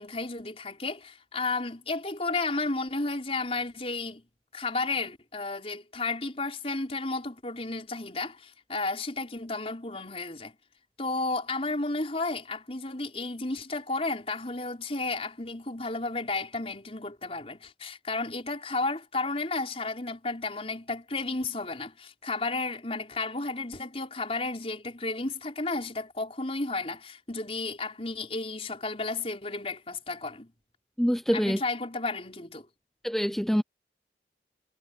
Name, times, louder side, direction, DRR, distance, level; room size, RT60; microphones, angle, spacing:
voice 1, 0.0-4.2 4.5-10.5 11.0-30.5 31.3-32.7, left 3 dB, 35° left, 5.1 m, -33 dB
voice 2, 31.0-31.6 33.0-33.6, equal, ahead, 0.5 m, -25 dB
head